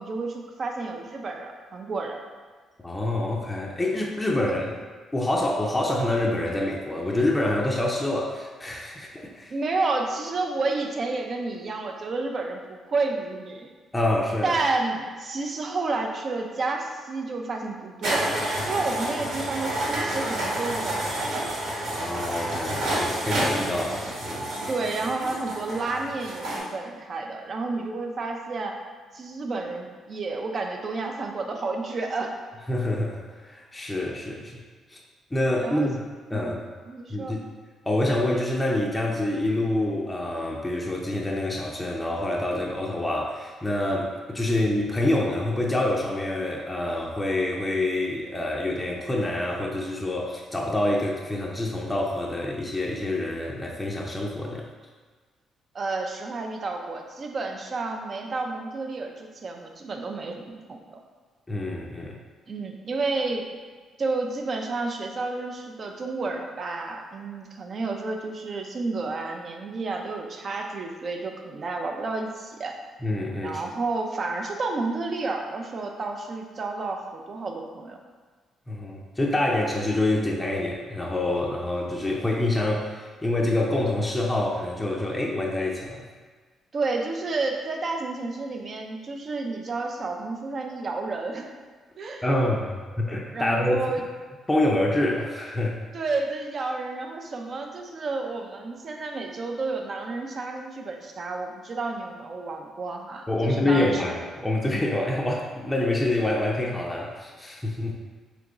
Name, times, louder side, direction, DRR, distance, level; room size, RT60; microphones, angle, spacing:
voice 1, 0.0-2.2 4.4-4.6 9.5-13.7 14.4-18.3 18.6-21.5 24.7-28.8 29.1-32.3 35.6-35.9 36.3-36.6 36.9-37.3 55.7-61.0 62.5-63.5 64.0-72.8 73.4-78.0 86.7-91.5 92.0-92.3 93.3-94.0 95.9-104.0, right 3 dB, 45° right, 2 dB, 0.5 m, -30 dB
voice 2, 2.8-4.8 5.1-9.5 13.9-14.6 21.9-24.5 32.7-33.2 33.4-34.6 34.9-35.0 35.3-36.0 36.3-36.6 37.1-37.4 37.9-54.7 61.5-62.2 73.0-73.6 78.7-86.1 92.2-93.8 94.5-95.8 103.3-107.9, left 1 dB, 15° left, -2 dB, 0.5 m, -26 dB
sound 1, 18.0-26.6, right 1 dB, 75° right, 1.2 m, -29 dB
3.4 x 3.0 x 3.8 m, 1.5 s
cardioid pair, 90°, 0 cm